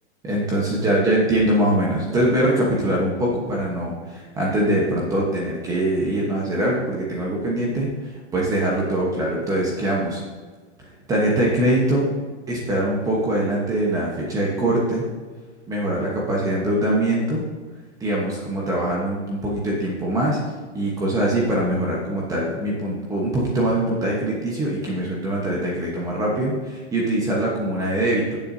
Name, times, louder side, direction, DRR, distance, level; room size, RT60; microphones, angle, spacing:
voice 1, 0.2-10.2 11.1-12.1 12.5-15.0 15.7-17.4 18.0-20.4 20.7-28.4, right 1 dB, 10° right, -4 dB, 1.0 m, -23 dB
14.5 x 7.2 x 2.7 m, 1.4 s
hypercardioid pair, 165°, 35 cm